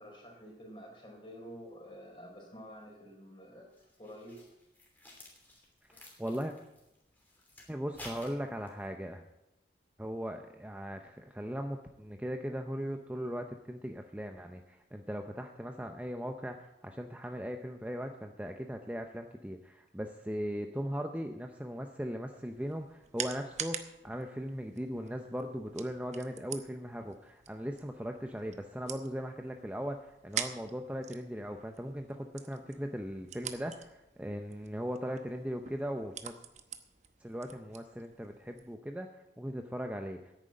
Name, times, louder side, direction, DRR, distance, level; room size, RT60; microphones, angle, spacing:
voice 1, 0.0-4.4 5.9-6.1, equal, 25° left, 0 dB, 4.0 m, -49 dB
sound 1, 3.7-8.9, left 1 dB, 10° left, 3.0 m, -53 dB
voice 2, 5.9-6.5 7.7-9.2 10.0-36.4 37.2-40.3, equal, 10° right, 5 dB, 0.6 m, -39 dB
sound 2, 22.3-38.7, right 8 dB, 40° right, 0.9 m, -46 dB
10.5 x 9.3 x 8.8 m, 0.91 s
head